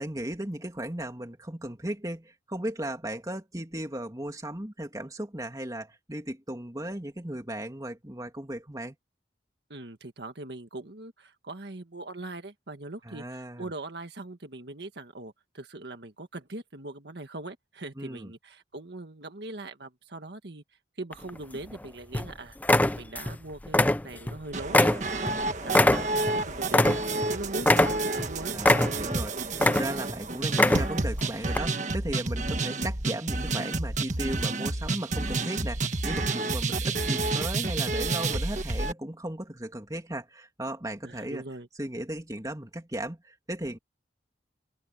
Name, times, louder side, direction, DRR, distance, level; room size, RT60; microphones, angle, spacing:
voice 1, 0.0-8.9 13.0-13.7 18.0-18.3 28.5-41.4 41.8-43.8, right 1 dB, 20° right, 2.7 m, -36 dB
voice 2, 9.7-20.6 21.0-22.6 23.0-28.5 41.0-41.7, right 2 dB, 65° right, 1.6 m, -41 dB
sound 1, 21.1-21.8 22.1-22.3 22.6-23.4 23.7-24.4 24.7-27.3 27.6-28.3 28.6-29.2 29.5-30.1 30.5-31.1 31.5-31.6, left 1 dB, 10° left, 0.4 m, -22 dB
sound 2, 24.5-38.9, right 2 dB, 40° right, 1.6 m, -30 dB
open air
head